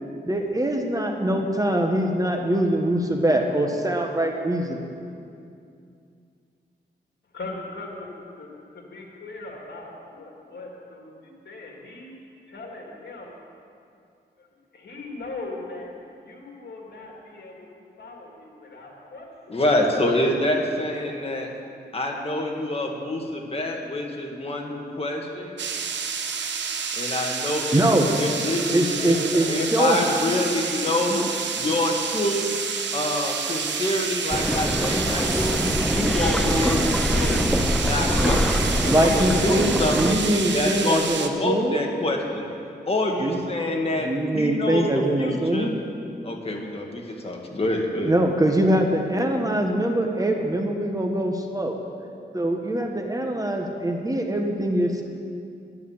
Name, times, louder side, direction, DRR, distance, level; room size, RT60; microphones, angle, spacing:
voice 1, 0.2-4.9 27.7-28.1 28.7-30.0 30.8-31.3 38.9-41.8 43.2-43.4 44.0-45.7 48.0-51.8 52.3-55.0, right 1 dB, 20° right, 2 dB, 1.2 m, -23 dB
voice 2, 7.3-8.1 8.4-8.5 8.7-12.1 12.5-13.3 14.4-14.5 14.7-15.9 16.2-17.5 18.0-19.6 28.6-30.1, left 2 dB, 70° left, -1 dB, 2.5 m, -39 dB
voice 3, 19.5-21.5 21.9-25.6 26.9-29.1 29.5-31.3 31.5-32.6 32.9-37.5 37.8-40.2 40.5-42.6 42.9-44.1 44.3-45.7 46.2-48.1, left 1 dB, 30° left, 0 dB, 1.8 m, -26 dB
sound 1, 25.6-41.3, right 6 dB, 85° right, 0.9 m, -29 dB
sound 2, 34.3-40.1, equal, 5° left, 0.8 m, -24 dB
10.5 x 10.5 x 7.2 m, 2.5 s
wide cardioid pair, 95°, 18 cm